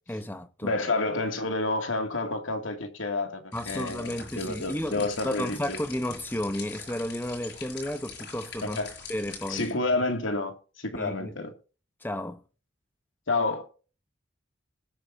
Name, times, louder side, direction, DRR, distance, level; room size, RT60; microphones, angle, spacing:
voice 1, 0.1-0.8 3.5-8.8 9.1-9.7 10.9-11.4 12.0-12.4, left 1 dB, 10° left, 1.0 m, -33 dB
voice 2, 0.6-5.8 8.6-8.9 9.5-11.5 13.3-13.6, left 2 dB, 85° left, 2.6 m, -29 dB
sound 1, 3.5-9.7, left 5 dB, 60° left, 6.2 m, -43 dB
20.5 x 8.8 x 2.8 m
head